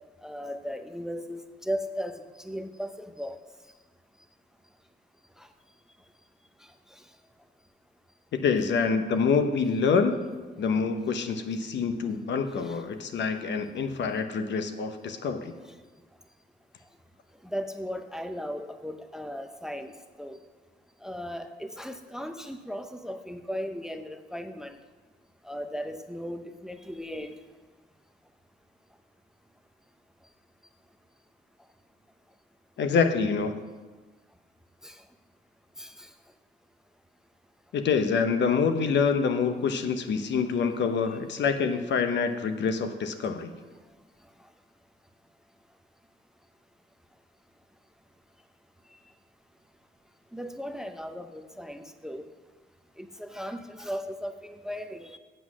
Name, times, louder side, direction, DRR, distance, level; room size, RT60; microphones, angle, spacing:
voice 1, 0.2-3.4 5.4-5.5 12.6-12.8 15.6-15.7 17.4-19.9 20.2-20.4 21.0-24.8 25.4-27.4 34.8-35.0 35.8-36.1 50.3-52.2 53.0-55.2, equal, ahead, 9 dB, 0.6 m, -37 dB
voice 2, 8.3-10.2 10.6-15.5 32.8-33.5 37.7-43.5, left 5 dB, 65° left, 8 dB, 0.9 m, -26 dB
8.1 x 7.6 x 6.2 m, 1.3 s
cardioid pair, 90°, 20 cm